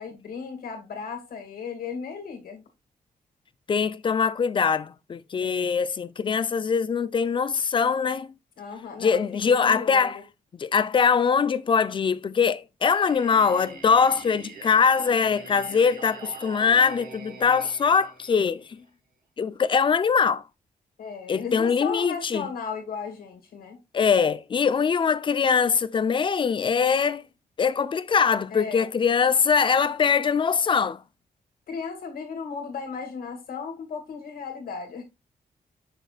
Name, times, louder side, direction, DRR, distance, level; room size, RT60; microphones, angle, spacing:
voice 1, 0.0-2.6 5.4-5.8 8.6-10.2 21.0-23.8 28.5-28.9 31.7-35.0, left 5 dB, 75° left, 2.4 m, -35 dB
voice 2, 3.7-8.3 9.0-10.2 10.6-18.8 19.4-20.4 21.3-22.5 23.9-27.2 27.6-31.0, left 6 dB, 35° left, 0.4 m, -22 dB
Singing, 12.9-18.8, right 4 dB, 75° right, 1.8 m, -44 dB
6.6 x 6.3 x 2.4 m
wide cardioid pair, 130°, 15 cm